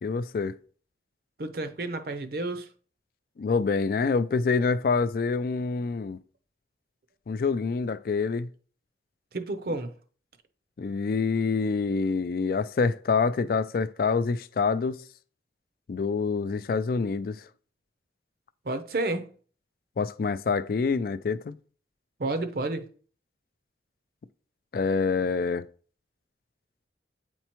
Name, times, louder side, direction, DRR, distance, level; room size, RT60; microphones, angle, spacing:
voice 1, 0.0-0.6 3.4-6.2 7.3-8.5 10.8-15.0 15.9-17.4 20.0-21.6 24.7-25.7, left 4 dB, 50° left, 0.3 m, -26 dB
voice 2, 1.4-2.7 9.3-9.9 18.6-19.3 22.2-22.9, right 2 dB, 55° right, 0.6 m, -30 dB
8.1 x 4.4 x 3.0 m
head